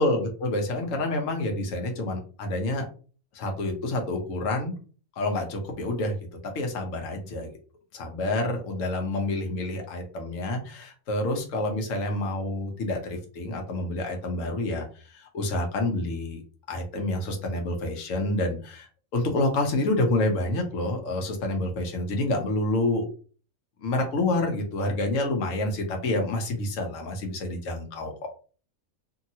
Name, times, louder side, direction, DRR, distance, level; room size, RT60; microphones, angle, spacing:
voice 1, 0.0-2.8 3.3-4.7 5.2-6.1 6.5-7.5 7.9-16.4 16.7-18.9 19.1-23.0 23.8-28.1, left 2 dB, 65° left, 3 dB, 1.2 m, -28 dB
2.8 x 2.8 x 2.7 m, 0.38 s
omnidirectional pair, 1.5 m